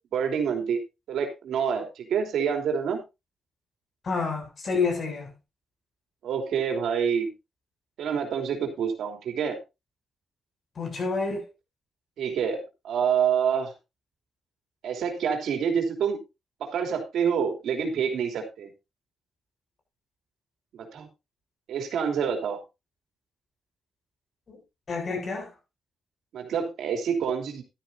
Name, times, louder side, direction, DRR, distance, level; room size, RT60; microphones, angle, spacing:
voice 1, 0.1-0.8 1.1-3.0 6.2-7.3 8.0-9.6 12.2-13.7 14.8-16.2 16.6-18.7 20.7-21.1 21.7-22.6 26.3-27.6, right 7 dB, 80° right, 3.2 m, -27 dB
voice 2, 4.0-5.3 10.8-11.5 24.5-24.6 24.9-25.5, left 4 dB, 50° left, 7.4 m, -29 dB
13.5 x 12.5 x 2.7 m
cardioid pair, 75°, 0 cm